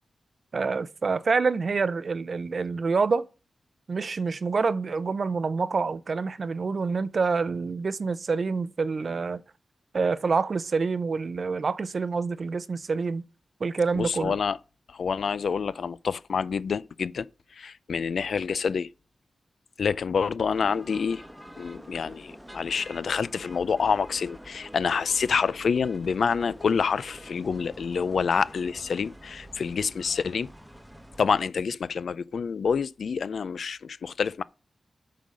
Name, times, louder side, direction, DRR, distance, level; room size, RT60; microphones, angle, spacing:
voice 1, 0.5-3.3 3.9-9.4 9.9-13.2 13.6-14.4, right 4 dB, 55° right, 0.5 m, -27 dB
voice 2, 13.9-14.6 14.9-17.3 17.5-18.9 19.8-21.2 21.6-30.5 31.2-34.4, left 6 dB, 75° left, 0.4 m, -27 dB
sound 1, 20.5-31.3, equal, ahead, 0.9 m, -47 dB
8.3 x 3.9 x 6.3 m
wide cardioid pair, 95°, 0 cm